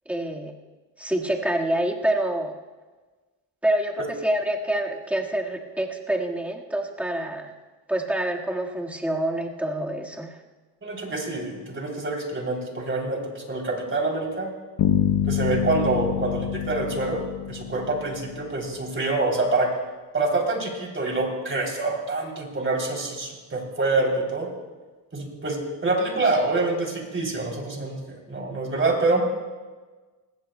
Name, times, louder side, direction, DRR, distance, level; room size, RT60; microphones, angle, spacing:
voice 1, 0.0-0.5 1.0-2.6 3.6-7.5 7.9-10.4, right 1 dB, 5° right, 0 dB, 1.7 m, -27 dB
voice 2, 10.8-14.5 15.3-17.2 17.5-19.7 20.1-24.5 25.1-29.2, right 2 dB, 25° right, 1 dB, 3.3 m, -26 dB
sound 1, 14.8-18.5, left 10 dB, 70° left, 0.9 m, -26 dB
19.5 x 16.5 x 2.2 m, 1.3 s
cardioid pair, 90°, 44 cm